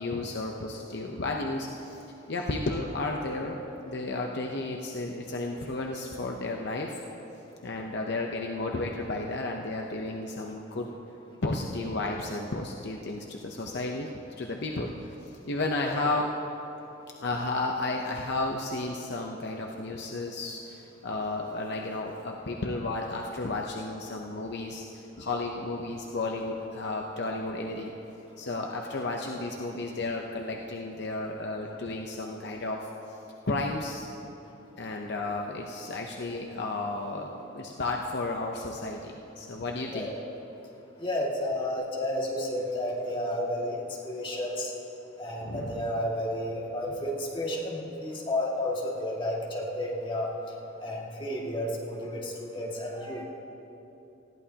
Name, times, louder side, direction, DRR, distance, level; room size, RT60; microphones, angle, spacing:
voice 1, 0.0-2.0 2.3-7.0 7.6-10.9 11.4-14.1 14.4-16.3 17.2-27.9 28.4-33.2 33.5-34.1 34.8-40.1 45.4-45.9, left 2 dB, 60° left, 1 dB, 0.8 m, -33 dB
voice 2, 41.0-44.7 45.2-50.3 50.8-53.2, left 1 dB, 25° left, -4 dB, 2.1 m, -32 dB
20.0 x 14.5 x 2.9 m, 2.9 s
head